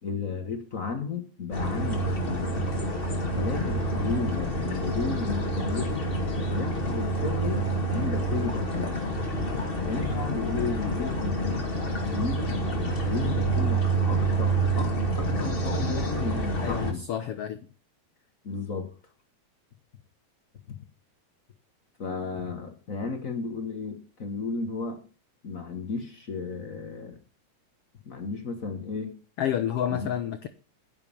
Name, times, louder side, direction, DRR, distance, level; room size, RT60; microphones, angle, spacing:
voice 1, 0.0-2.7 3.3-6.1 6.5-9.1 9.8-11.6 11.9-17.0 18.4-18.9 20.7-20.8 22.0-25.0 25.4-27.2 28.0-29.1 29.8-30.1, left 4 dB, 50° left, 6 dB, 1.0 m, -33 dB
sound 1, 1.5-16.9, right 2 dB, 20° left, 1.7 m, -28 dB
voice 2, 16.6-17.7 29.4-30.5, left 9 dB, 75° left, 10 dB, 1.3 m, -29 dB
10.5 x 9.4 x 6.8 m, 0.37 s
omnidirectional pair, 3.8 m